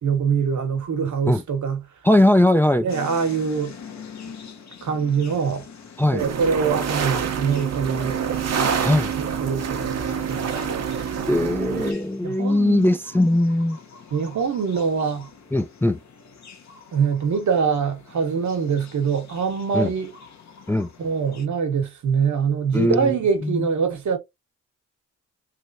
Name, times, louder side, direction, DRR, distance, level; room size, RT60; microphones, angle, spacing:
voice 1, 0.0-1.8 2.8-3.7 4.8-5.7 6.1-10.8 12.2-12.9 14.1-15.3 16.9-20.1 21.0-24.2, right 6 dB, 75° right, 1.1 m, -24 dB
voice 2, 2.0-2.9 6.0-6.2 8.8-9.1 11.3-13.8 15.5-16.0 19.7-19.9 20.7-20.9 22.7-23.2 23.4-23.7, left 1 dB, 10° left, 0.3 m, -20 dB
sound 1, 2.9-21.5, left 6 dB, 65° left, 1.0 m, -45 dB
sound 2, 6.2-11.9, right 7 dB, 60° right, 0.8 m, -26 dB
3.2 x 3.0 x 2.6 m
cardioid pair, 65°, 30 cm